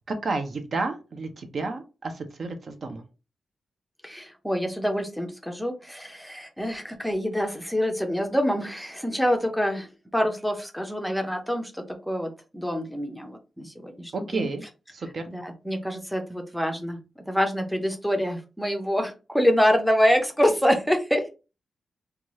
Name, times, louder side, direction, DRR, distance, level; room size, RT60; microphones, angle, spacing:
voice 1, 0.1-3.0 14.1-14.6 14.9-15.3, right 3 dB, 45° right, 0.5 m, -31 dB
voice 2, 4.0-14.5 15.3-21.2, equal, ahead, 0.5 m, -26 dB
2.7 x 2.3 x 3.0 m
wide cardioid pair, 155°, 0 cm